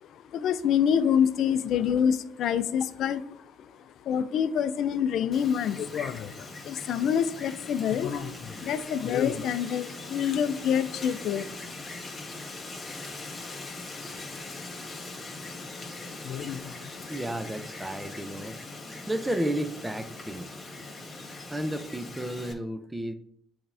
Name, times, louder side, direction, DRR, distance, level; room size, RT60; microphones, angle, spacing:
voice 1, 0.0-13.8 14.1-15.6 16.1-17.1, left 8 dB, 65° left, 13 dB, 0.5 m, -28 dB
Wind, 5.3-22.5, left 2 dB, 35° left, 1.9 m, -41 dB
voice 2, 17.1-18.6 19.1-20.5 21.5-23.1, right 1 dB, 10° right, 9 dB, 0.7 m, -32 dB
8.6 x 3.6 x 3.4 m, 0.66 s
supercardioid pair, 70°, 0 cm